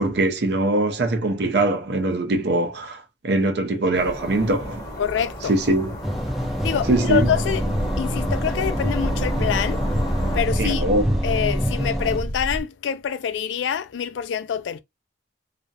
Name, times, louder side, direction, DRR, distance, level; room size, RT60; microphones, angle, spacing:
voice 1, 0.0-4.8 5.5-6.0 6.9-7.3 10.6-11.2, right 2 dB, 65° right, 0.6 m, -22 dB
sound 1, 3.7-5.3 5.6-5.7 6.1-12.6, equal, 55° left, 0.7 m, -30 dB
sound 2, 3.9-10.4, equal, 20° left, 0.9 m, -32 dB
voice 2, 5.0-5.5 6.6-7.6 8.0-9.8 10.3-10.9 11.2-14.8, left 8 dB, 90° left, 0.3 m, -25 dB
sound 3, 6.0-12.2, equal, ahead, 0.5 m, -27 dB
2.4 x 2.1 x 2.6 m
head